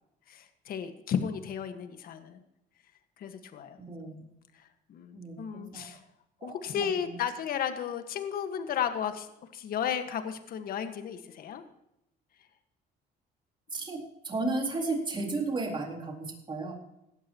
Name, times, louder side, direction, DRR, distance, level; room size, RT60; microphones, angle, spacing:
voice 1, 0.3-2.4 3.2-3.8 4.6-6.0 6.4-9.3 9.5-11.6, left 8 dB, 60° left, 8 dB, 1.6 m, -34 dB
voice 2, 3.8-4.2 5.2-6.0 6.4-7.2 13.7-16.7, right 3 dB, 30° right, 1 dB, 3.9 m, -34 dB
17.5 x 12.5 x 3.0 m, 0.84 s
cardioid pair, 110°, 17 cm